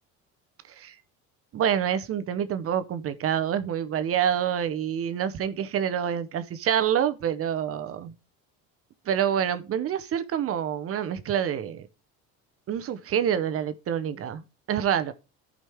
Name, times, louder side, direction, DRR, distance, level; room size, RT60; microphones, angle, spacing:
voice 1, 1.5-8.1 9.1-11.9 12.7-15.1, right 9 dB, 45° right, 0.9 m, -27 dB
13.5 x 5.2 x 3.4 m
supercardioid pair, 110°, 33 cm